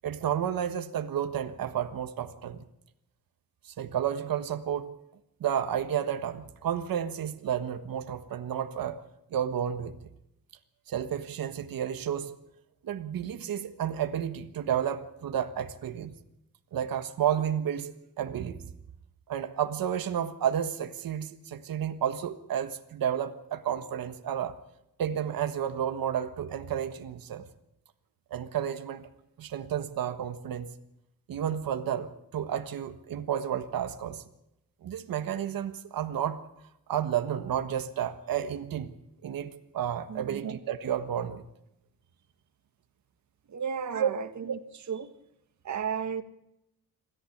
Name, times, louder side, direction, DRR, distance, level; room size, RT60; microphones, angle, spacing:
voice 1, 0.0-2.6 3.6-4.9 5.4-9.0 9.3-10.0 10.9-12.3 12.8-16.1 16.7-18.6 19.3-24.6 25.0-27.4 28.3-29.1 29.4-30.7 31.3-34.2 34.8-36.4 36.9-38.9 39.2-41.4 43.9-44.1, right 9 dB, 85° right, 8 dB, 1.5 m, -31 dB
voice 2, 40.1-40.4 43.5-45.1 45.6-46.2, right 7 dB, 55° right, 9 dB, 1.8 m, -34 dB
26.5 x 14.0 x 8.7 m, 0.84 s
wide cardioid pair, 170°, 34 cm